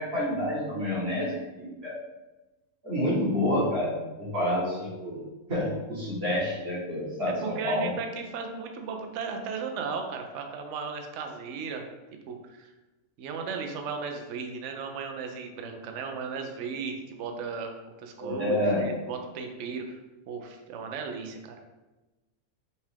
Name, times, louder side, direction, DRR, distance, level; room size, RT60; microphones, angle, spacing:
voice 1, 0.0-2.0 2.8-5.2 5.5-7.9 18.2-18.9, left 1 dB, 45° right, -6 dB, 1.3 m, -28 dB
voice 2, 7.2-11.9 12.3-12.7 13.2-17.7 18.0-20.0 20.3-21.6, right 5 dB, 65° right, 3 dB, 0.8 m, -36 dB
5.4 x 2.4 x 3.4 m, 1.1 s
omnidirectional pair, 1.6 m